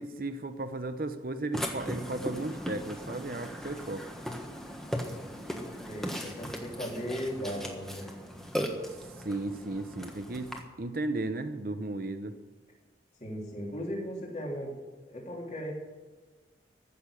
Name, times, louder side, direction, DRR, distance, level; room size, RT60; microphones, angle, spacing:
voice 1, 0.0-4.1 9.2-10.5 10.8-12.4, right 2 dB, 50° right, 9 dB, 0.8 m, -35 dB
Burping eructation, 1.5-10.6, equal, ahead, 1.4 m, -38 dB
voice 2, 5.8-8.1 13.2-14.7 15.1-15.7, equal, 40° left, -2 dB, 3.3 m, -37 dB
15.0 x 6.9 x 9.9 m, 1.3 s
head